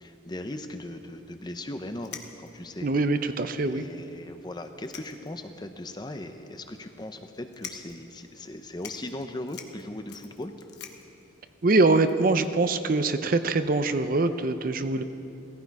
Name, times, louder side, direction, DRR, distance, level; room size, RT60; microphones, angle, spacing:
voice 1, 0.0-2.9 3.6-10.5, left 1 dB, 20° left, 7 dB, 0.7 m, -38 dB
sound 1, 1.6-1.7 2.0-2.7 3.4-3.5 3.7-3.8 4.6-5.5 5.9-6.0 6.7-7.0 7.5-8.0 8.4-8.5 8.8-12.5, left 7 dB, 60° left, 1.1 m, -45 dB
voice 2, 2.8-3.8 11.6-15.0, right 3 dB, 45° right, 10 dB, 0.6 m, -23 dB
17.5 x 15.0 x 4.7 m, 2.9 s
head